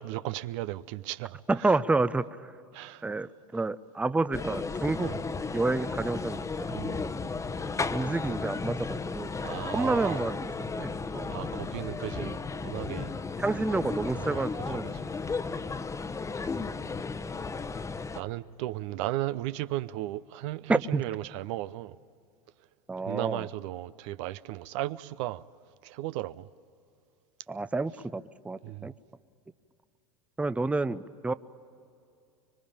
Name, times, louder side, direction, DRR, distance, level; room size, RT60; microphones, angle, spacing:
voice 1, 0.0-1.7 2.7-3.1 5.0-5.2 6.7-7.1 9.4-10.2 11.2-13.1 14.2-15.2 18.1-22.0 23.0-25.4 25.8-26.5 28.6-28.9, right 16 dB, 60° right, 0.6 m, -35 dB
voice 2, 1.5-2.5 3.0-5.1 5.5-6.7 7.9-9.3 9.7-10.5 10.8-11.3 12.2-12.3 13.4-14.8 20.7-21.0 22.9-23.5 27.5-28.9 30.4-31.3, right 3 dB, 5° right, 0.6 m, -29 dB
sound 1, 4.3-18.2, left 4 dB, 15° left, 1.0 m, -34 dB
25.0 x 23.5 x 8.8 m
hypercardioid pair, 85°, 18 cm